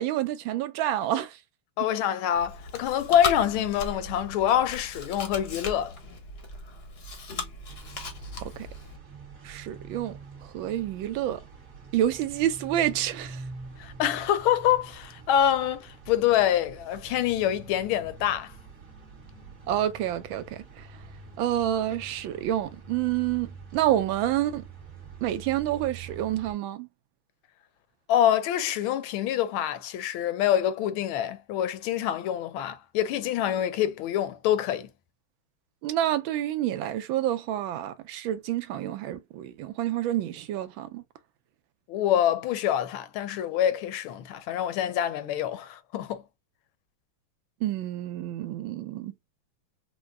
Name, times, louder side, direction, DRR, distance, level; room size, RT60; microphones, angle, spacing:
voice 1, 0.0-1.4 8.4-8.7 9.4-11.4 11.9-13.4 19.7-20.9 21.4-24.6 25.2-26.9 35.8-41.0 47.6-49.1, right 12 dB, 80° right, 1.3 m, -28 dB
voice 2, 1.8-5.9 13.8-18.5 28.1-34.9 41.9-46.2, left 10 dB, 85° left, 1.5 m, -26 dB
Chewing mastication, 2.3-9.0, left 4 dB, 50° left, 0.7 m, -37 dB
sound 1, 7.7-26.5, right 5 dB, 45° right, 1.6 m, -45 dB
4.6 x 2.1 x 2.2 m
omnidirectional pair, 2.3 m